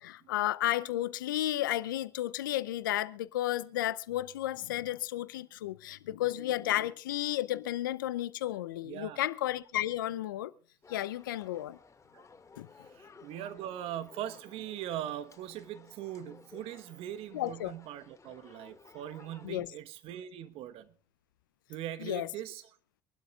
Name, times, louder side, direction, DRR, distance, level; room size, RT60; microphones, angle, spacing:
voice 1, 0.0-10.5 10.9-11.8 12.6-12.7 17.3-17.7 19.4-19.7 22.0-22.3, left 14 dB, 85° left, 0.6 m, -33 dB
voice 2, 8.8-9.2 12.1-12.2 12.8-20.9 21.7-22.7, right 11 dB, 65° right, 1.3 m, -41 dB
sound 1, 10.8-19.5, left 5 dB, 30° left, 2.2 m, -57 dB
25.5 x 12.0 x 2.5 m
hypercardioid pair, 60°, 11 cm